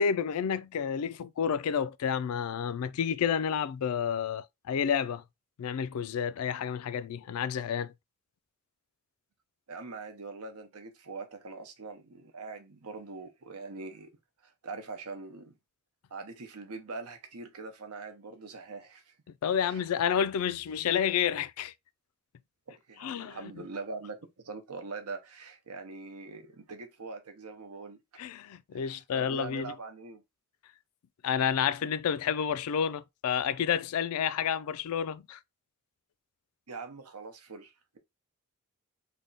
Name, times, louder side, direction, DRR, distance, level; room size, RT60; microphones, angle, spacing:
voice 1, 0.0-5.2 5.6-7.9 19.4-21.7 23.0-23.4 28.2-29.7 31.2-35.4, left 7 dB, 80° left, 0.3 m, -30 dB
voice 2, 9.7-14.1 14.6-15.5 16.1-19.1 19.6-19.8 22.7-24.2 24.4-28.0 28.7-30.2 36.7-38.0, right 3 dB, 90° right, 0.8 m, -43 dB
3.4 x 2.2 x 3.8 m
head